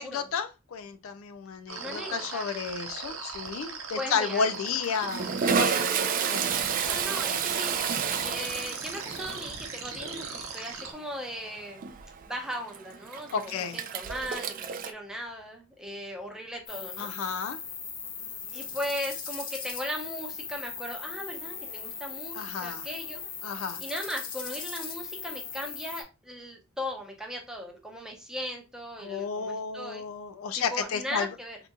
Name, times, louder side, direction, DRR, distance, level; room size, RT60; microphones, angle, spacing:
voice 1, 0.0-5.9 6.3-6.6 13.3-13.8 17.0-17.6 22.4-22.8 23.4-23.8 29.0-31.3, left 6 dB, 80° left, 9 dB, 0.4 m, -32 dB
voice 2, 1.7-2.4 4.0-4.5 6.9-11.8 12.2-17.1 18.5-23.2 23.8-30.0 30.7-31.6, equal, 5° right, 1 dB, 0.7 m, -38 dB
sound 1, 1.7-10.9, right 5 dB, 85° right, 0.7 m, -39 dB
Toilet flush, 2.7-3.1 3.3-3.5 4.5-14.9, right 7 dB, 40° right, 0.3 m, -31 dB
sound 2, 16.7-26.0, left 6 dB, 45° left, 0.7 m, -39 dB
3.7 x 2.9 x 2.2 m, 0.29 s
head